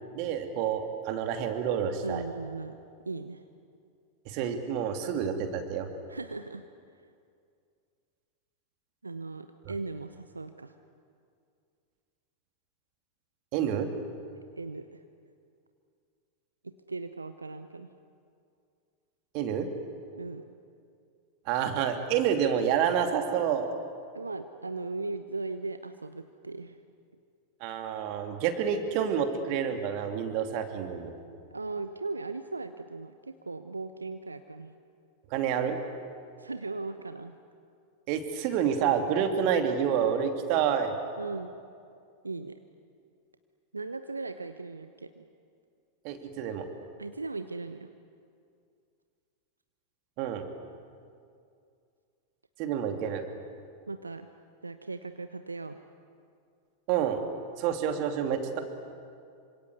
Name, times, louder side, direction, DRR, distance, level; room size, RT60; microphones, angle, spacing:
voice 1, 0.1-2.2 4.3-5.9 13.5-13.9 19.3-19.7 21.5-23.7 27.6-31.1 35.3-35.8 38.1-40.9 46.0-46.7 50.2-50.5 52.6-53.3 56.9-57.2 57.6-58.6, right 8 dB, 45° right, 6 dB, 2.8 m, -28 dB
voice 2, 2.0-2.8 3.1-3.4 6.1-6.6 9.0-10.7 14.3-15.0 16.9-17.9 20.1-20.5 24.1-26.8 31.5-34.8 36.4-37.3 41.2-41.6 42.2-42.5 43.7-45.2 47.0-47.9 53.9-54.3 54.6-55.8, right 3 dB, 80° right, 9 dB, 0.9 m, -38 dB
27.0 x 25.5 x 8.2 m, 2.4 s
figure-of-eight pair, 90°, 0 cm